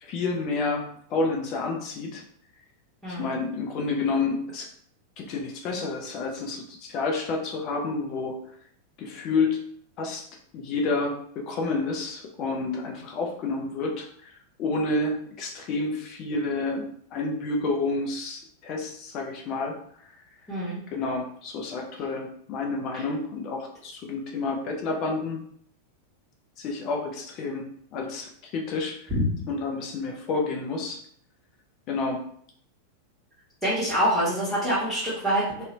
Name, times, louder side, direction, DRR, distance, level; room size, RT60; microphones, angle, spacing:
voice 1, 0.0-2.2 3.1-4.7 5.2-8.4 9.0-9.6 10.0-10.2 10.5-16.8 17.1-19.8 20.9-25.4 26.6-27.7 27.9-29.1 29.5-31.0 31.9-32.2, left 3 dB, 40° left, 1 dB, 0.4 m, -29 dB
voice 2, 20.5-20.8 29.1-29.2 33.6-35.6, equal, 10° right, -11 dB, 1.0 m, -25 dB
2.6 x 2.0 x 2.7 m, 0.63 s
figure-of-eight pair, 90°, 0 cm